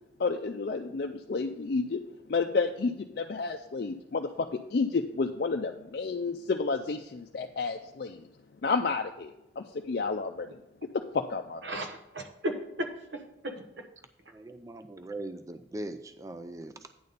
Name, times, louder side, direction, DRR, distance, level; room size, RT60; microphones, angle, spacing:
voice 1, 0.2-2.0 2.3-8.2 8.6-10.5 11.1-11.6, left 4 dB, 55° left, 3 dB, 0.4 m, -31 dB
voice 2, 11.6-13.8, equal, 75° right, 5 dB, 1.1 m, -36 dB
voice 3, 14.3-16.9, right 2 dB, 20° right, 9 dB, 0.4 m, -40 dB
9.4 x 4.0 x 6.7 m, 0.87 s
head